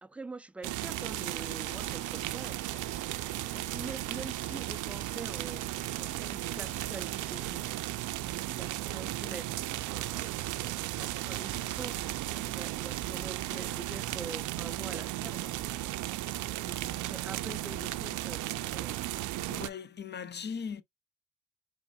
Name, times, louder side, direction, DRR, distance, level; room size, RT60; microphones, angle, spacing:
voice 1, 0.0-2.8 3.5-5.6 6.0-7.6 8.5-9.6 9.9-15.7 16.5-19.1, right 3 dB, 5° right, 0.3 m, -45 dB
sound 1, 0.6-19.7, right 15 dB, 80° right, 0.5 m, -35 dB
sound 2, 1.0-8.1, right 5 dB, 25° right, 0.9 m, -50 dB
voice 2, 19.5-20.8, left 6 dB, 35° left, 0.6 m, -39 dB
4.8 x 3.6 x 2.2 m
cardioid pair, 90°, 30 cm